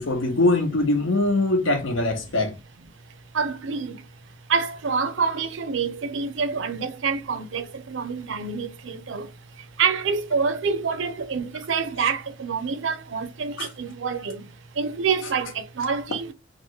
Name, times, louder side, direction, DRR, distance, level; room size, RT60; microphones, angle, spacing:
voice 1, 0.0-2.5 13.6-13.7, left 2 dB, 85° left, 0.9 m, -22 dB
voice 2, 3.3-4.0 4.5-9.3 9.8-14.5 14.8-16.3, right 5 dB, 70° right, 0.5 m, -27 dB
3.0 x 2.5 x 2.9 m
head